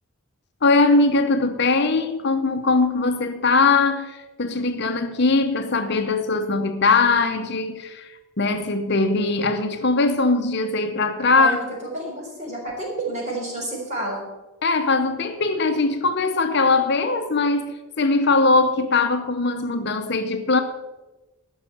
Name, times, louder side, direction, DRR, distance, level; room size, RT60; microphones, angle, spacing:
voice 1, 0.6-8.1 8.4-11.6 14.6-20.6, left 3 dB, 50° left, 0.8 m, -21 dB
voice 2, 11.4-14.2, right 1 dB, 30° right, 4.5 m, -30 dB
14.5 x 6.3 x 7.2 m
head